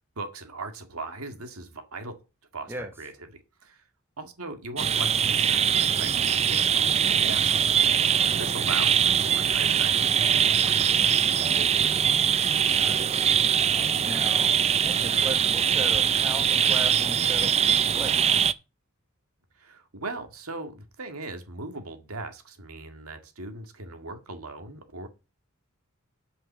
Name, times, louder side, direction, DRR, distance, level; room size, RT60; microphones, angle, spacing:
voice 1, 0.2-2.2 2.5-3.8 4.2-7.9 8.4-10.9 19.6-25.1, right 3 dB, 80° right, 7 dB, 1.9 m, -39 dB
sound 1, 4.8-18.5, right 8 dB, 30° right, 0.4 m, -22 dB
voice 2, 12.7-13.2 14.0-18.4, right 1 dB, 10° right, 6 dB, 1.2 m, -38 dB
8.6 x 5.6 x 7.3 m, 0.29 s
head